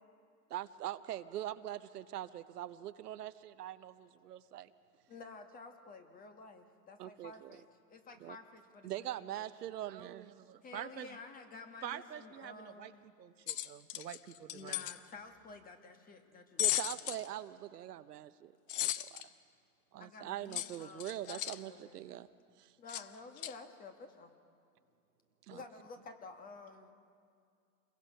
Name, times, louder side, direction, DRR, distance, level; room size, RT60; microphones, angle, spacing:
voice 1, 0.5-4.7 7.0-7.6 8.2-8.4 8.8-10.3 16.6-19.2 19.9-22.3 22.6-22.7 25.5-25.6, right 12 dB, 70° right, 12 dB, 0.9 m, -43 dB
voice 2, 5.1-8.9 9.2-9.5 10.6-13.0 14.5-16.7 17.0-17.1 19.2-19.3 20.0-22.0 22.8-24.3 25.5-26.9, left 4 dB, 15° left, 7 dB, 1.4 m, -52 dB
voice 3, 9.9-11.2 11.8-14.9, right 10 dB, 85° right, 9 dB, 1.2 m, -47 dB
sound 1, 13.5-15.0 16.6-17.3 18.7-19.2 20.5-21.6 22.9-23.0 23.4-23.5, left 14 dB, 35° left, 0.5 m, -36 dB
27.5 x 21.5 x 5.6 m, 2.3 s
hypercardioid pair, 135°, 49 cm